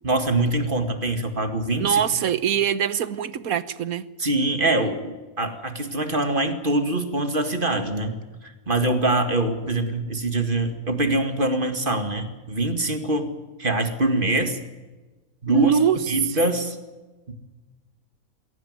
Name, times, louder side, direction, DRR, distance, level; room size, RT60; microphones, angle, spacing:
voice 1, 0.0-2.2 4.2-13.3 13.6-14.6 15.4-15.7 16.1-16.8 17.3-17.4, right 2 dB, 35° right, 7 dB, 2.3 m, -24 dB
voice 2, 1.7-4.0 15.5-16.0, right 8 dB, 75° right, 15 dB, 1.5 m, -23 dB
22.5 x 17.0 x 9.4 m, 1.2 s
omnidirectional pair, 1.5 m